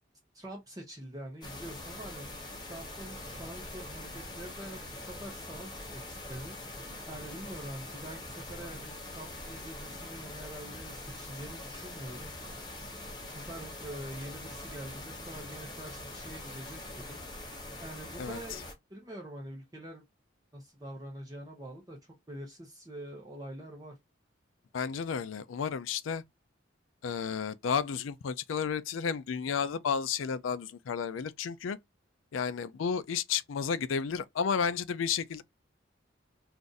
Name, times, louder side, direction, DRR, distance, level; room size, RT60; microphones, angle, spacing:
voice 1, 0.3-2.3 2.7-6.6 7.1-12.3 13.3-17.2 17.8-20.0 20.5-23.9, right 1 dB, 20° right, 0.7 m, -45 dB
sound 1, 1.4-18.7, left 1 dB, 25° left, 0.8 m, -43 dB
voice 2, 24.7-26.2 27.0-31.8 32.3-35.4, left 6 dB, 90° left, 0.4 m, -32 dB
2.5 x 2.5 x 3.9 m
head